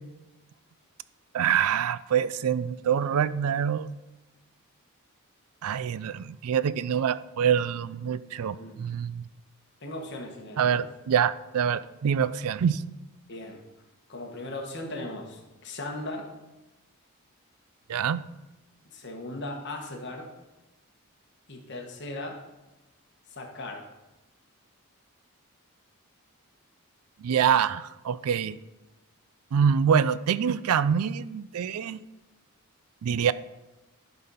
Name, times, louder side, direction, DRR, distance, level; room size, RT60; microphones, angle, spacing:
voice 1, 1.3-3.9 5.6-9.2 10.6-12.8 17.9-18.2 27.2-28.6 29.5-32.0 33.0-33.3, right 7 dB, 80° right, 17 dB, 0.4 m, -25 dB
voice 2, 9.8-10.8 13.3-13.6 14.1-16.3 18.8-20.3 21.5-22.4 23.3-23.9, left 2 dB, 50° left, 2 dB, 1.3 m, -38 dB
11.0 x 4.1 x 5.6 m, 1.0 s
head